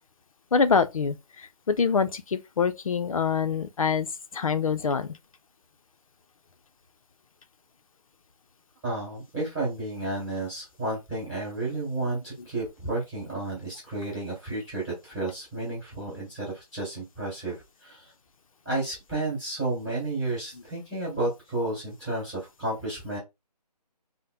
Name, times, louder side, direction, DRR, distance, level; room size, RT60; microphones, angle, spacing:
voice 1, 0.5-5.2, left 5 dB, 55° left, 0.5 m, -25 dB
voice 2, 8.8-18.1 18.6-23.2, right 2 dB, 10° right, 2.4 m, -32 dB
5.6 x 2.1 x 2.3 m
figure-of-eight pair, 165°, 21 cm